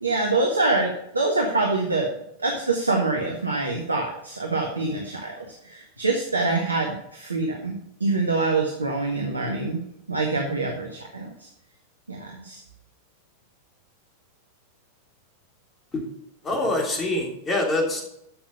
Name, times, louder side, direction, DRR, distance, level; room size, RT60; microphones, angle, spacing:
voice 1, 0.0-2.1 2.4-9.8 10.1-11.3 12.1-12.6, right 3 dB, 80° right, 2 dB, 1.5 m, -25 dB
voice 2, 16.4-18.1, left 2 dB, 20° left, 1 dB, 3.2 m, -25 dB
13.0 x 6.2 x 5.5 m, 0.78 s
figure-of-eight pair, 90°, 0 cm